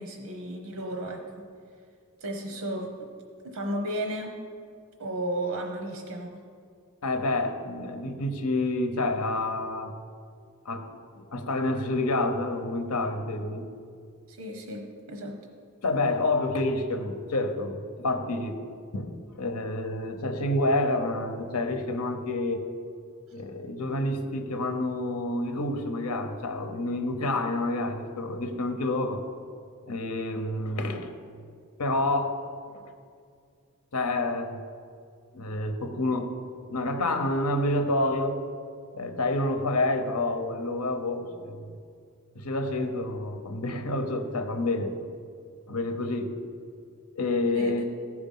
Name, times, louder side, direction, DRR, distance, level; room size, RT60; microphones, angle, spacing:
voice 1, 0.0-1.4 2.2-3.1 3.4-4.4 5.0-6.4 14.3-15.4 47.5-47.8, right 1 dB, 90° right, 3 dB, 1.0 m, -34 dB
voice 2, 7.0-9.9 10.6-13.7 15.8-18.6 18.9-22.7 23.3-29.2 29.9-31.1 31.8-32.4 32.7-32.8 33.9-34.6 35.3-36.3 36.7-38.4 38.9-41.8 42.3-44.9 45.7-46.3 47.1-47.8, left 2 dB, 85° left, 6 dB, 0.9 m, -28 dB
14.5 x 4.9 x 5.5 m, 2.3 s
head